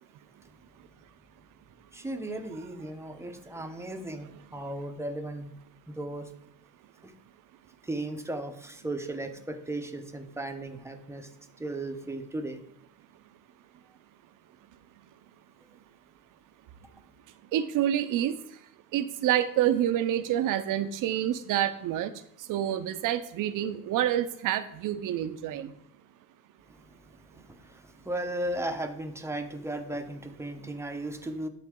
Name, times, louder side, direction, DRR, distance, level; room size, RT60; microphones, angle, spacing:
voice 1, 1.9-5.5 5.9-6.3 7.9-11.3 11.6-12.6 28.1-31.5, right 1 dB, 10° right, 6 dB, 0.8 m, -35 dB
voice 2, 4.1-4.6 17.5-18.4 18.9-22.1 22.4-25.7 30.6-30.7, right 11 dB, 70° right, 12 dB, 0.7 m, -28 dB
12.0 x 4.1 x 3.7 m, 0.77 s
cardioid pair, 125°, 33 cm